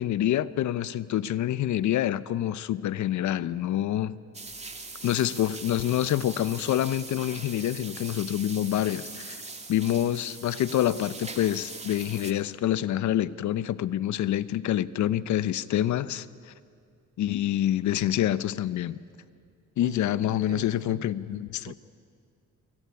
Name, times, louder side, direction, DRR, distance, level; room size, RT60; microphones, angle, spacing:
voice 1, 0.0-4.2 5.0-9.4 9.7-16.5 17.2-19.0 19.8-21.7, left 12 dB, 75° left, 17 dB, 0.9 m, -27 dB
sound 1, 4.3-12.3, right 3 dB, 20° right, 2.5 m, -41 dB
voice 2, 19.8-21.7, right 9 dB, 55° right, 14 dB, 1.0 m, -44 dB
26.5 x 23.0 x 9.7 m, 2.3 s
cardioid pair, 90°, 30 cm